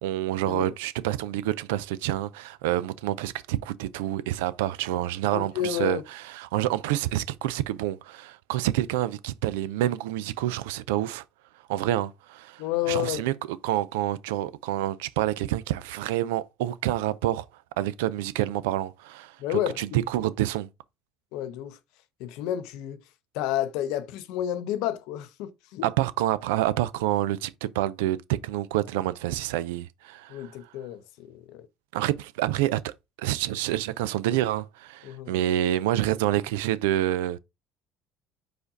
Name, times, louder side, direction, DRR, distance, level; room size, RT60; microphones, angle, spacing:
voice 1, 0.0-11.2 11.7-13.3 13.6-17.5 17.8-20.7 25.8-30.5 31.9-32.9 33.2-37.4, right 14 dB, 85° right, 0.3 m, -28 dB
voice 2, 5.3-6.0 12.6-13.2 19.4-19.8 21.3-21.8 22.2-23.0 23.3-25.8 30.3-31.7 35.0-35.3, left 12 dB, 75° left, 0.6 m, -30 dB
4.9 x 2.6 x 3.9 m
supercardioid pair, 80°, 0 cm